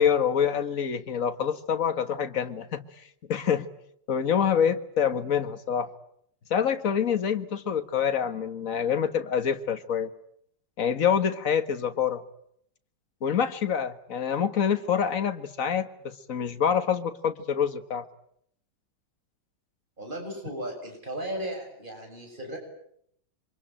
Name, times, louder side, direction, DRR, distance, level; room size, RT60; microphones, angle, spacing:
voice 1, 0.0-2.9 3.3-3.7 4.1-5.9 6.5-10.1 10.8-12.2 13.2-18.1, left 8 dB, 45° left, 9 dB, 1.8 m, -26 dB
voice 2, 20.0-22.6, right 1 dB, 25° right, 2 dB, 7.5 m, -36 dB
27.0 x 24.5 x 8.9 m, 0.71 s
omnidirectional pair, 2.0 m